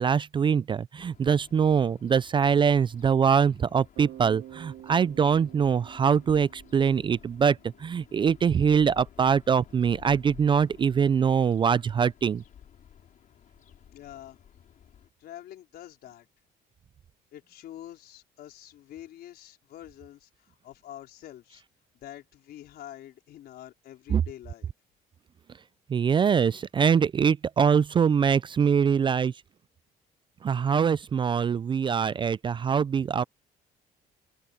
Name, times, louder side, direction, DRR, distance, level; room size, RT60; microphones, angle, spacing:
voice 1, 0.0-12.4 24.1-24.2 25.9-29.3 30.4-33.2, right 7 dB, 30° right, 0.4 m, -23 dB
sound 1, 1.0-15.1, left 9 dB, 55° left, 4.2 m, -54 dB
Bass guitar, 4.0-7.9, right 14 dB, 80° right, 2.3 m, -48 dB
voice 2, 13.9-14.4 15.2-16.3 17.3-20.3 20.6-21.6 21.9-24.7, left 12 dB, 70° left, 4.5 m, -46 dB
cardioid pair, 110°, 17 cm